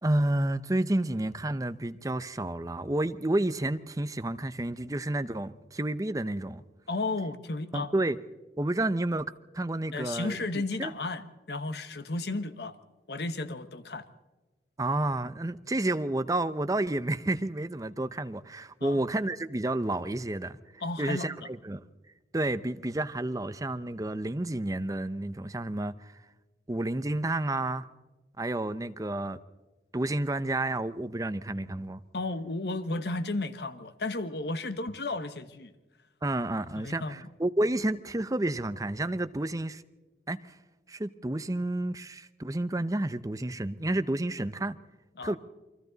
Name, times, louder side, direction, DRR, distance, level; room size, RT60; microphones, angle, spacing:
voice 1, 0.0-6.6 7.7-8.2 8.6-10.9 14.8-20.6 21.0-21.8 22.3-26.0 26.7-27.9 28.4-29.4 29.9-32.0 36.2-39.8 40.3-40.4 40.9-44.8 45.2-45.4, right 1 dB, 20° right, 0.6 m, -30 dB
voice 2, 6.9-7.9 9.9-12.8 13.1-14.1 18.8-19.0 20.8-21.5 32.1-35.7 36.8-37.2 45.2-45.4, left 2 dB, 65° left, 1.1 m, -33 dB
28.5 x 23.0 x 4.0 m
head